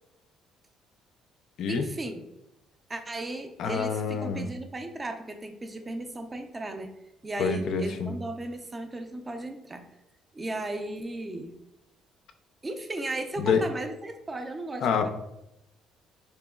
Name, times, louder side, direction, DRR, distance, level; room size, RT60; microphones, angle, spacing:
voice 1, 1.7-2.2 2.9-6.9 7.2-9.9 10.3-11.5 12.6-15.1, right 1 dB, 20° right, 6 dB, 0.4 m, -35 dB
voice 2, 3.6-4.5 7.4-8.1 13.4-13.6 14.8-15.1, left 6 dB, 60° left, 7 dB, 0.4 m, -27 dB
4.2 x 2.9 x 2.2 m, 0.87 s
cardioid pair, 140°, 0 cm